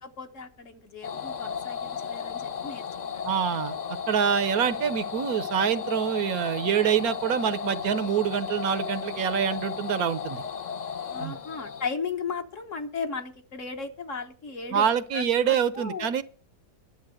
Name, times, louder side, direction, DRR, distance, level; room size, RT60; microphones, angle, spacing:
voice 1, 0.0-3.6 11.1-16.1, left 5 dB, 50° left, 1.5 m, -36 dB
sound 1, 1.0-11.9, left 7 dB, 90° left, 0.3 m, -35 dB
voice 2, 3.2-3.8 4.1-10.4 11.2-11.3 14.7-16.2, right 8 dB, 70° right, 1.2 m, -26 dB
11.5 x 7.0 x 7.7 m
omnidirectional pair, 1.8 m